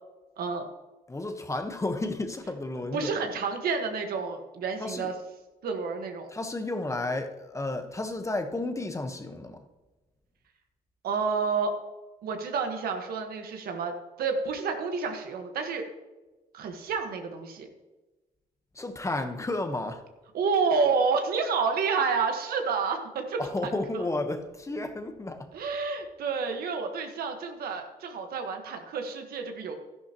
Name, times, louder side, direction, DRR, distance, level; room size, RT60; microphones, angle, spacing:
voice 1, 0.4-0.7 2.9-5.1 5.6-6.3 11.0-11.7 12.2-13.9 14.2-15.9 16.5-17.7 20.3-24.0 25.5-29.8, right 5 dB, 85° right, 5 dB, 1.4 m, -29 dB
voice 2, 1.1-3.1 4.8-5.1 6.3-9.6 18.7-20.0 23.4-25.5, left 2 dB, 20° left, 7 dB, 1.1 m, -32 dB
13.0 x 10.5 x 3.0 m, 1.1 s
cardioid pair, 95°, 15 cm